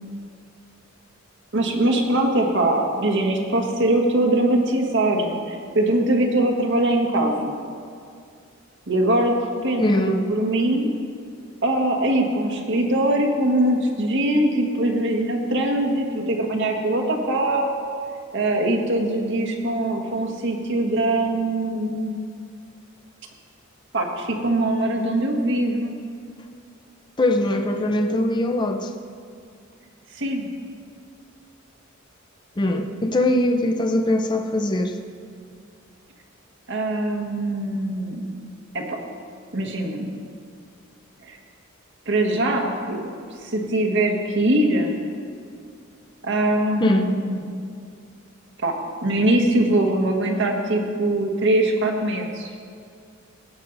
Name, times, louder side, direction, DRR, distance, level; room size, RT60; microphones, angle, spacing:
voice 1, 1.5-7.5 8.9-10.9 11.6-17.9 18.3-22.3 23.9-26.0 30.1-30.5 36.7-38.2 38.7-39.0 39.5-40.1 41.2-41.4 42.0-43.1 43.4-44.9 46.2-47.4 48.6-52.5, right 1 dB, 60° right, 1 dB, 1.5 m, -22 dB
voice 2, 9.8-10.2 27.2-28.9 32.6-34.9 46.8-47.1, left 1 dB, 20° left, 4 dB, 0.6 m, -21 dB
16.5 x 8.3 x 4.0 m, 2.3 s
head